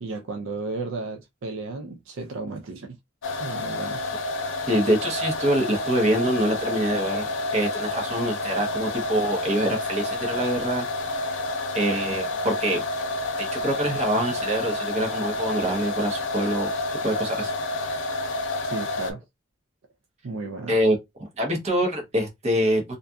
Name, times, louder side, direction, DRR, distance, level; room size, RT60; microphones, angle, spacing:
voice 1, 0.0-3.0 3.4-4.0 18.6-19.2 20.2-20.7, right 3 dB, 70° right, 0.5 m, -33 dB
sound 1, 3.2-19.1, left 2 dB, 65° left, 0.5 m, -29 dB
voice 2, 4.7-10.9 11.7-12.8 13.4-16.7 17.0-17.5 17.8-17.9 20.7-21.0 21.4-23.0, right 1 dB, 30° right, 0.8 m, -25 dB
2.6 x 2.4 x 2.2 m
head